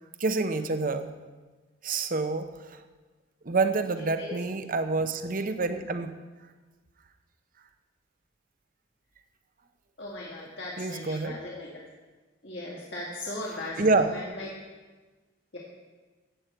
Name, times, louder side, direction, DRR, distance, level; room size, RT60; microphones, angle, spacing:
voice 1, 0.2-1.1 1.8-2.8 3.4-6.1 10.8-11.4 13.8-14.1, right 3 dB, 45° right, 9 dB, 0.8 m, -27 dB
voice 2, 10.0-11.7 12.4-14.5 15.5-15.6, left 1 dB, 65° left, -5 dB, 2.1 m, -38 dB
14.5 x 8.1 x 4.5 m, 1.3 s
head